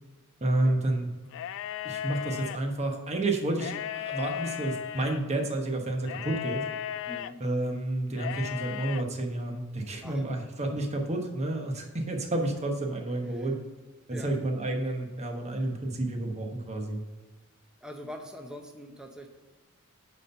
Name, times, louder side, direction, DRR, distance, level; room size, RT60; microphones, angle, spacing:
voice 1, 0.4-1.1 1.8-6.6 7.4-13.6 14.1-17.0, right 2 dB, 30° right, 2 dB, 1.1 m, -30 dB
sound 1, 1.3-2.6 3.5-5.2 6.1-7.3 8.1-9.0, left 9 dB, 60° left, 0.3 m, -35 dB
voice 2, 7.1-7.4 10.0-10.2 13.3-13.5 14.1-14.3 17.8-19.3, equal, 5° right, 3 dB, 0.6 m, -43 dB
9.0 x 4.3 x 5.4 m, 1.3 s
head